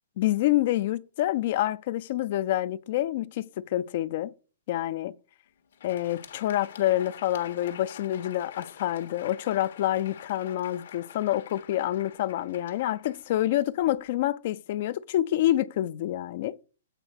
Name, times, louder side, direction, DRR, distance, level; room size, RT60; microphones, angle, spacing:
voice 1, 0.2-4.3 4.7-5.1 5.8-16.6, left 14 dB, 40° left, 0.4 m, -27 dB
Crowd, 5.6-14.1, left 8 dB, 65° left, 1.3 m, -47 dB
8.1 x 4.1 x 5.9 m
hypercardioid pair, 165°, 0 cm